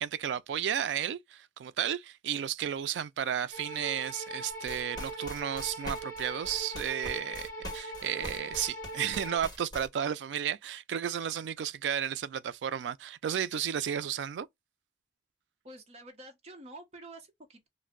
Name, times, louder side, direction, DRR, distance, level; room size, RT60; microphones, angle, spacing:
voice 1, 0.0-7.5 7.7-14.5, right 9 dB, 85° right, 0.3 m, -33 dB
sound 1, 3.5-9.4, right 1 dB, 50° left, 1.3 m, -41 dB
sound 2, 4.5-9.9, equal, 25° left, 1.5 m, -42 dB
voice 2, 15.6-17.7, right 2 dB, 35° right, 0.8 m, -48 dB
2.5 x 2.1 x 3.6 m
head